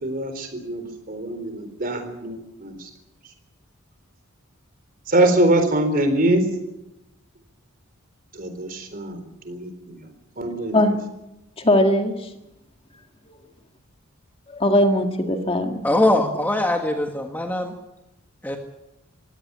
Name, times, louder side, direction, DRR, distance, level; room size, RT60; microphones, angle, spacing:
voice 1, 0.0-2.9 5.1-6.4 8.3-10.1 10.4-10.8, right 1 dB, 40° right, 8 dB, 3.9 m, -23 dB
voice 2, 11.6-12.3 14.5-15.7 16.2-16.4, left 1 dB, 25° left, 5 dB, 1.9 m, -20 dB
voice 3, 15.8-17.7 18.4-18.6, left 1 dB, 10° left, 3 dB, 1.6 m, -21 dB
22.0 x 16.5 x 8.7 m, 0.92 s
head